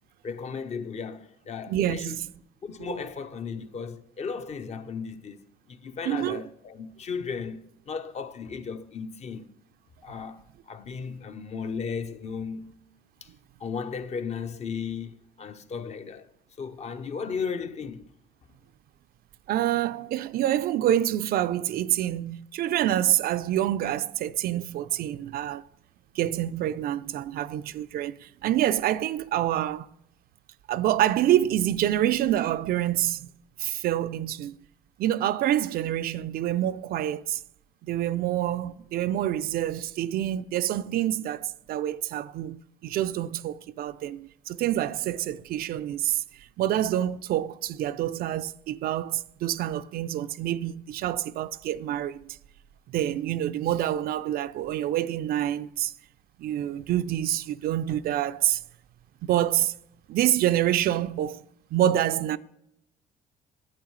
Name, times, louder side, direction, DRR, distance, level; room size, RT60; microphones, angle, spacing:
voice 1, 0.2-2.2 2.6-9.5 10.0-12.7 13.2-13.3 13.6-16.3 16.6-18.0, left 6 dB, 40° left, 0.7 m, -35 dB
voice 2, 1.7-2.3 2.8-2.9 6.1-6.4 19.5-25.6 26.1-29.9 30.7-33.3 33.6-34.6 35.0-37.4 37.8-52.4 52.9-55.9 56.4-58.6 59.2-59.7 60.1-61.4 61.7-62.4, right 12 dB, 60° right, 0.4 m, -27 dB
10.5 x 8.7 x 3.2 m
cardioid pair, 110°, 17 cm